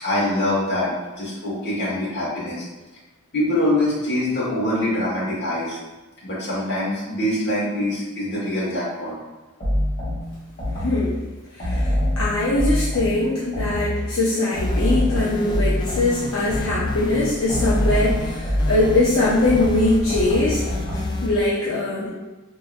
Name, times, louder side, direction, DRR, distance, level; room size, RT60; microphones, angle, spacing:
voice 1, 0.0-2.6 3.3-5.8 6.2-9.1, left 1 dB, 55° left, -7 dB, 1.3 m, -24 dB
sound 1, 9.6-11.1 11.6-14.1 14.5-17.0 17.5-21.3, left 1 dB, 40° left, 1.4 m, -24 dB
voice 2, 10.8-11.3 11.5-22.1, left 2 dB, 75° left, -7 dB, 0.6 m, -22 dB
sound 2, 14.5-21.4, left 1 dB, 20° left, 0.3 m, -34 dB
3.7 x 2.7 x 2.5 m, 1.2 s
head